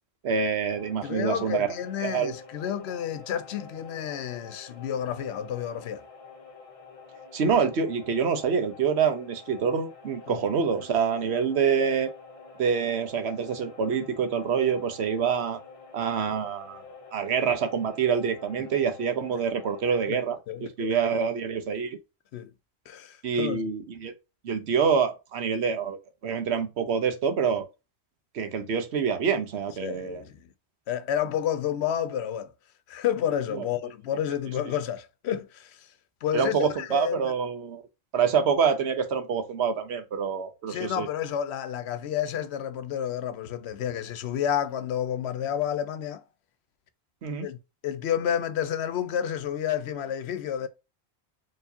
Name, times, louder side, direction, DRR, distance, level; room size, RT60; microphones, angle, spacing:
voice 1, 0.2-1.7 2.0-2.3 7.3-12.1 12.6-15.6 15.9-16.8 17.1-20.4 20.8-22.0 23.2-24.1 24.4-27.7 28.3-30.2 33.5-33.7 36.3-37.8 38.1-41.1 47.2-47.5, right 6 dB, 75° right, 1.0 m, -26 dB
sound 1, 0.7-20.1, left 5 dB, 35° left, 0.8 m, -48 dB
voice 2, 1.0-6.0 10.3-10.4 20.1-20.2 20.5-20.9 22.3-22.5 22.9-23.6 29.8-30.5 30.9-32.5 32.9-35.9 36.2-37.3 40.7-46.2 47.4-47.6 47.8-50.7, left 9 dB, 75° left, 0.8 m, -30 dB
4.6 x 3.1 x 2.7 m
omnidirectional pair, 1.1 m